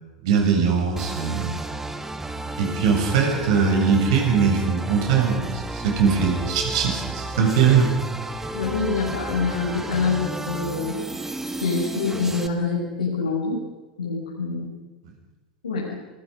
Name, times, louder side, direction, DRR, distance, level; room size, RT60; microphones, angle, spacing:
voice 1, 0.2-1.6 2.6-7.9, right 6 dB, 55° right, 1 dB, 7.9 m, -21 dB
sound 1, 1.0-12.5, right 2 dB, 10° right, 1.8 m, -32 dB
voice 2, 8.5-10.9 11.6-13.6 14.0-14.7 15.6-15.9, left 4 dB, 75° left, -5 dB, 6.1 m, -25 dB
28.0 x 22.5 x 5.4 m, 1.2 s
figure-of-eight pair, 85°, 4 cm